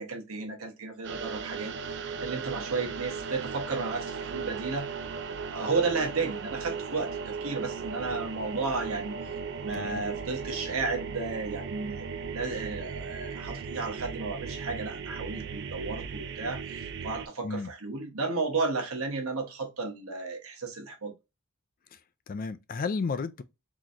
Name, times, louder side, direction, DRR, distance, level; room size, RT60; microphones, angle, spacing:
voice 1, 0.0-1.9 2.2-4.9 5.5-9.2 9.6-12.1 12.3-16.6 17.0-21.1, right 4 dB, 65° right, 1.1 m, -33 dB
sound 1, 1.0-17.3, right 5 dB, 50° right, 0.4 m, -37 dB
voice 2, 9.7-10.0 17.4-17.7 21.9-22.0 22.3-23.4, left 4 dB, 40° left, 0.3 m, -33 dB
4.0 x 3.0 x 2.5 m
head